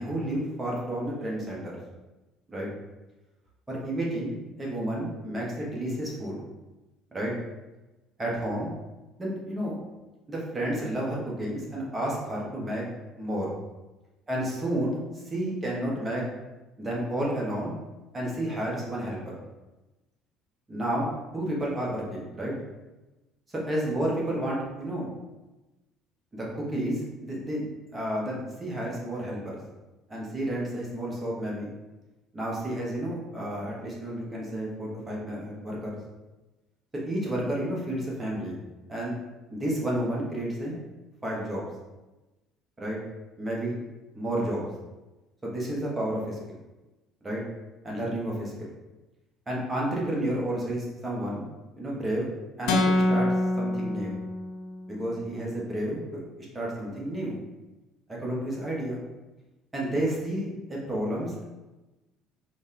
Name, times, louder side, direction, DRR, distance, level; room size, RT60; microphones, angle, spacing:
voice 1, 0.0-1.8 2.5-2.7 3.7-6.4 7.1-7.3 8.2-8.7 9.2-9.7 10.3-12.8 13.2-13.5 14.3-15.0 15.2-16.2 16.8-17.7 18.1-19.2 20.7-22.5 23.5-25.1 26.3-27.7 27.9-29.6 30.1-31.7 32.3-36.0 37.1-38.6 38.9-39.2 39.5-40.8 41.2-41.6 42.8-43.0 43.4-43.8 44.1-44.6 45.4-46.6 47.2-47.4 47.8-48.7 49.5-51.4 51.8-52.3 52.6-53.3 53.6-54.2 54.9-56.0 56.5-57.4 58.1-59.0 59.7-61.4, right 1 dB, 20° right, -4 dB, 1.4 m, -31 dB
sound 1, 52.7-54.8, left 1 dB, 60° left, 0.5 m, -25 dB
4.0 x 2.5 x 3.7 m, 1.1 s
figure-of-eight pair, 55°, 0 cm